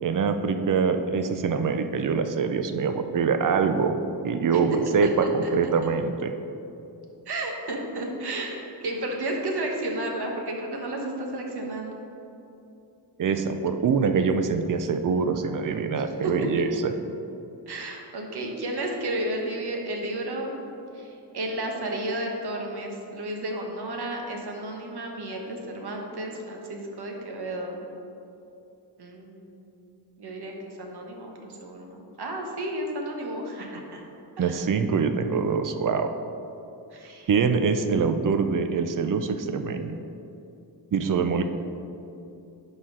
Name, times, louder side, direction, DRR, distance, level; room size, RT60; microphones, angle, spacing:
voice 1, 0.0-4.0 4.2-6.3 13.2-16.9 34.4-36.1 37.3-40.0 40.9-41.4, right 5 dB, 50° right, 8 dB, 0.5 m, -24 dB
voice 2, 7.3-8.6 8.8-12.0 15.9-16.5 17.7-20.6 20.9-27.8 29.0-29.6 30.2-34.0 34.4-34.6 36.9-37.3, right 1 dB, 65° right, 1 dB, 1.1 m, -32 dB
11.0 x 4.3 x 3.8 m, 2.8 s
wide cardioid pair, 125°, 42 cm